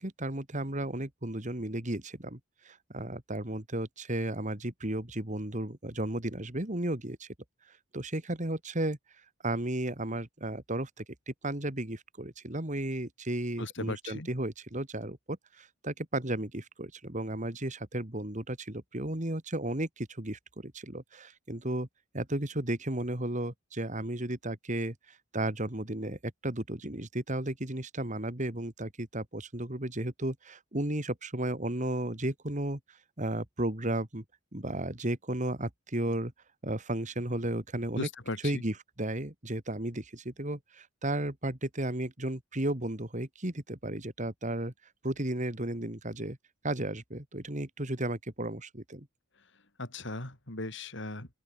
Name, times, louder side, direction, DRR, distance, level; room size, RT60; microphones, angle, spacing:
voice 1, 0.0-7.3 7.7-9.0 9.4-21.9 22.1-34.2 34.5-36.3 36.6-38.1 38.4-44.7 45.0-46.4 46.6-49.1, right 1 dB, 35° right, 2.6 m, -34 dB
voice 2, 13.6-14.3 38.0-38.6 49.8-51.3, left 2 dB, 60° left, 4.7 m, -37 dB
open air
head